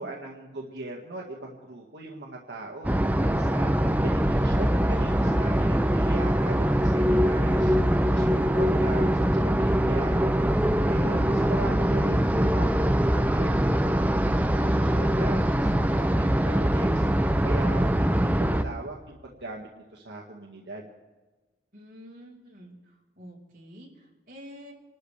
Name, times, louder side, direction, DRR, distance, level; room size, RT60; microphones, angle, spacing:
voice 1, 0.0-10.2 10.8-20.9, right 2 dB, 75° right, -2 dB, 1.8 m, -40 dB
sound 1, 2.8-18.6, equal, 10° right, 0.5 m, -23 dB
voice 2, 21.7-24.7, equal, 50° right, -3 dB, 4.7 m, -47 dB
27.5 x 13.0 x 3.4 m, 1.2 s
head